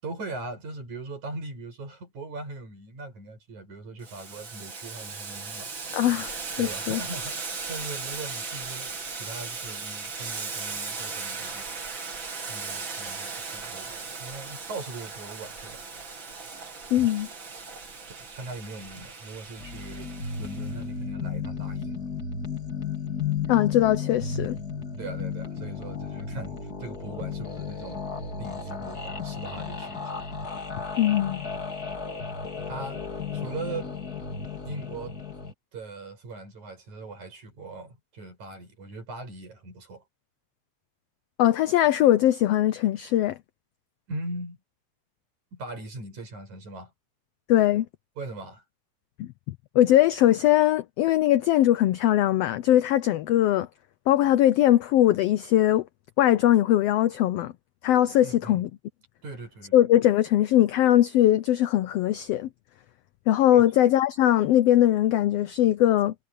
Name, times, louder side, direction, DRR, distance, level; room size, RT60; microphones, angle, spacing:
voice 1, 0.0-5.7 6.6-7.4 7.7-11.8 12.5-15.8 17.0-17.1 18.2-22.1 25.0-28.1 28.4-30.1 32.7-33.9 34.6-35.2 35.7-40.0 44.1-44.6 45.5-46.9 48.2-48.6 58.2-58.7 59.2-59.8 63.5-63.6, right 2 dB, 65° right, 8.2 m, -40 dB
Boiling, 4.0-20.8, right 4 dB, 40° right, 3.3 m, -37 dB
voice 2, 5.9-7.0 16.9-17.3 23.5-24.6 31.0-31.4 41.4-43.4 47.5-47.8 49.2-53.7 54.1-55.8 56.2-57.5 57.8-58.7 59.7-62.5 63.3-66.1, left 13 dB, 85° left, 1.4 m, -21 dB
sound 1, 19.6-35.5, left 5 dB, 30° left, 3.3 m, -34 dB
omnidirectional pair, 3.6 m